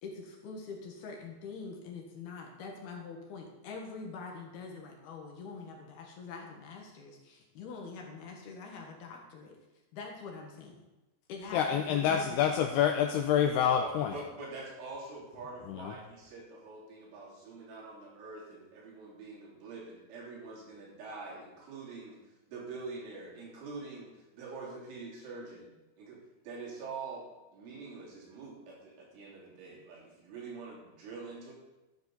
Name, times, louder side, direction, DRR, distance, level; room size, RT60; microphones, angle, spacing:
voice 1, 0.0-9.6 9.9-10.9 11.3-12.4, left 4 dB, 65° left, 1 dB, 3.1 m, -44 dB
voice 2, 11.5-14.2 15.7-15.9, left 8 dB, 90° left, 4 dB, 2.3 m, -27 dB
voice 3, 13.8-22.2 22.5-31.5, right 3 dB, 85° right, -4 dB, 5.8 m, -45 dB
13.5 x 9.8 x 4.0 m, 1.1 s
omnidirectional pair, 5.4 m